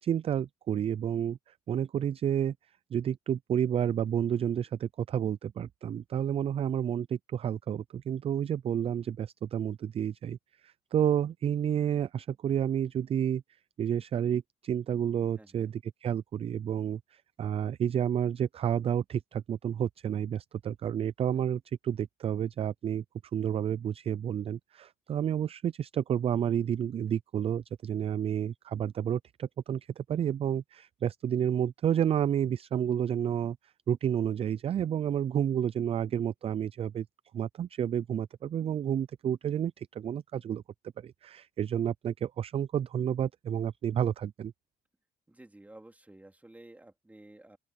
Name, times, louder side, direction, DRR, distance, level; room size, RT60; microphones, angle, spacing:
voice 1, 0.0-2.5 2.9-13.4 13.8-23.0 23.3-37.1 37.3-40.6 41.0-44.5, right 9 dB, 35° right, 0.4 m, -30 dB
voice 2, 15.2-15.7 45.3-47.6, right 1 dB, 10° right, 3.2 m, -53 dB
open air
cardioid pair, 110°, 17 cm